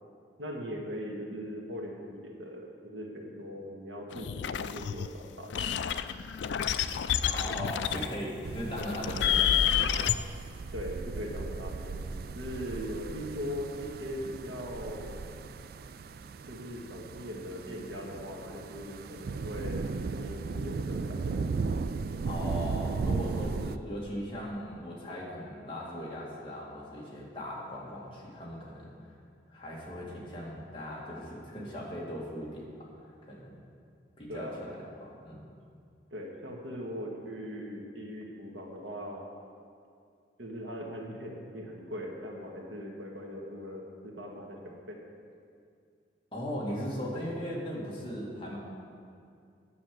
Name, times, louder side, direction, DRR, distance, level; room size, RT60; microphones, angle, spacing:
voice 1, 0.4-5.7 10.7-12.0 12.3-15.2 16.5-21.4 34.3-34.7 36.1-39.3 40.4-45.0, equal, 85° right, -1 dB, 1.6 m, -40 dB
sound 1, 4.1-5.1 5.5-8.1 8.8-10.1, left 9 dB, 70° left, 0.4 m, -29 dB
voice 2, 7.2-10.1 22.3-28.9 29.5-32.6 33.2-33.5 34.2-34.7 35.0-35.4 46.3-48.6, equal, 25° left, -5 dB, 2.0 m, -38 dB
sound 2, 8.4-23.8, right 4 dB, 50° right, 0.3 m, -36 dB
10.0 x 6.4 x 7.6 m, 2.3 s
head